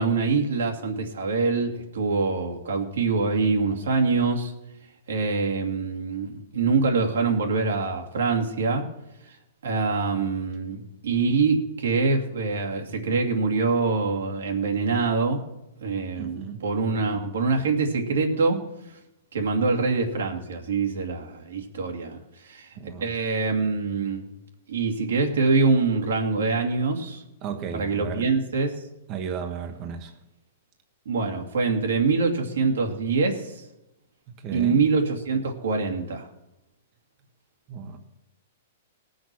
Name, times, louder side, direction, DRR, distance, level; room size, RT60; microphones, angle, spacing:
voice 1, 0.0-4.5 5.1-8.9 9.6-15.4 15.8-18.6 19.3-24.3 24.7-27.2 27.7-28.7 31.1-33.6 34.5-36.3, right 4 dB, 85° right, 2 dB, 2.4 m, -24 dB
voice 2, 16.2-16.6 22.8-23.1 27.4-28.3 29.1-30.1 34.3-34.8 37.7-38.0, right 6 dB, 35° right, 4 dB, 1.2 m, -34 dB
18.5 x 6.4 x 6.1 m, 0.91 s
hypercardioid pair, 145°, 0 cm